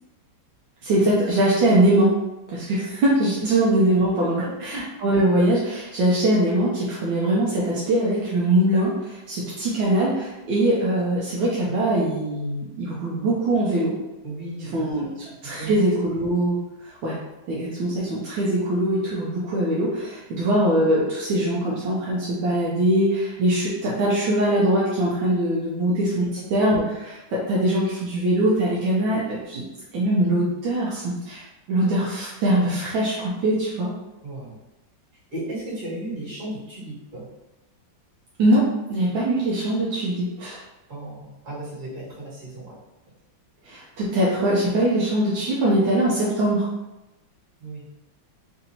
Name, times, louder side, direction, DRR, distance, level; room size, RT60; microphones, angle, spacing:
voice 1, 0.8-2.1 2.5-13.9 14.7-15.0 15.4-16.6 16.8-17.2 17.5-29.6 29.9-33.9 38.4-40.6 43.6-46.7, right 1 dB, 80° right, -6 dB, 1.4 m, -22 dB
voice 2, 14.2-15.1 15.6-15.7 34.2-34.6 35.3-37.2 40.9-42.7 47.6-47.9, right 1 dB, 45° right, -10 dB, 2.0 m, -35 dB
3.9 x 2.6 x 2.7 m, 0.98 s
omnidirectional pair, 2.1 m